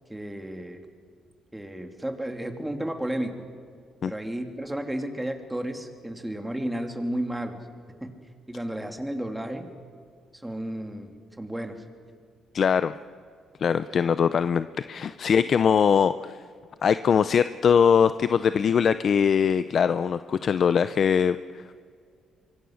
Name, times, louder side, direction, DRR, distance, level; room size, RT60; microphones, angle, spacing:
voice 1, 0.1-0.8 1.5-3.3 4.0-7.6 8.0-8.1 8.5-9.7 10.4-11.7, right 1 dB, 10° right, 5 dB, 2.8 m, -32 dB
voice 2, 12.5-12.9 13.6-16.4 16.8-21.8, left 7 dB, 55° left, 13 dB, 0.6 m, -22 dB
25.0 x 22.5 x 6.5 m, 2.1 s
cardioid pair, 90°, 0 cm